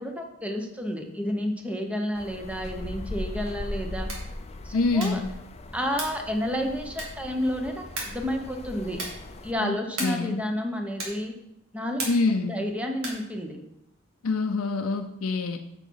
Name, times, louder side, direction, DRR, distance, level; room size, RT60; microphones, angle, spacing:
voice 1, 0.0-4.1 4.6-5.2 5.7-9.0 9.4-11.3 11.7-12.1 12.5-13.6, equal, 5° right, 3 dB, 0.9 m, -30 dB
sound 1, 2.2-9.5, left 1 dB, 30° left, 0.5 m, -39 dB
sound 2, 4.0-4.4 4.9-5.3 5.9-6.3 6.9-7.3 7.9-8.3 8.9-9.3 9.9-10.3 11.0-11.3 12.0-12.4 13.0-13.3, right 2 dB, 75° right, 2.2 m, -36 dB
voice 2, 4.7-5.3 9.6-10.4 12.1-12.6 14.2-15.6, left 3 dB, 75° left, 5 dB, 0.5 m, -26 dB
6.8 x 6.6 x 4.7 m, 0.84 s
head